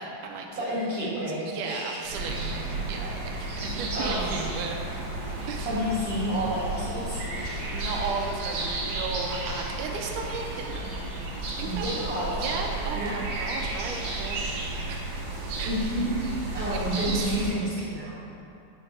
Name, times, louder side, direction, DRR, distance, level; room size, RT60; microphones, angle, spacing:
voice 1, 0.0-1.1 1.5-4.8 5.5-5.7 7.4-11.1 11.6-11.9 12.3-15.7 16.7-17.2, right 4 dB, 80° right, 1 dB, 2.0 m, -36 dB
voice 2, 0.6-2.0 3.9-4.4 5.6-7.2 11.6-12.3 12.9-13.2 15.6-18.2, equal, 40° right, -10 dB, 1.5 m, -30 dB
sound 1, 2.0-17.5, right 2 dB, 60° right, 1.9 m, -33 dB
sound 2, 4.8-9.0, left 1 dB, 70° left, 2.3 m, -47 dB
9.2 x 3.4 x 5.0 m, 2.6 s
omnidirectional pair, 3.9 m